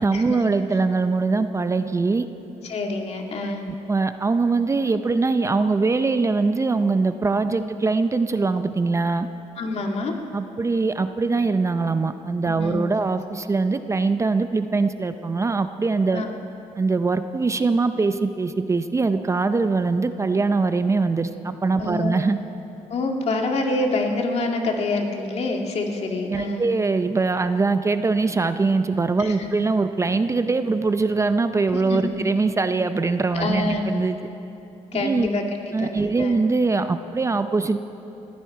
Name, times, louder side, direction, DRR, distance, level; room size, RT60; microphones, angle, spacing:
voice 1, 0.0-2.3 3.7-9.3 10.3-16.2 16.8-22.4 26.3-34.2 34.9-35.3 35.7-37.8, right 3 dB, 25° right, 10 dB, 0.5 m, -22 dB
voice 2, 2.6-3.6 7.5-7.6 9.6-10.2 12.5-12.8 16.1-16.3 21.8-22.2 22.9-26.7 29.2-29.5 31.7-32.2 33.3-33.9 34.9-35.4 35.8-36.4, left 2 dB, 55° left, 2 dB, 1.9 m, -26 dB
20.0 x 14.5 x 4.7 m, 3.0 s
cardioid pair, 105°, 13 cm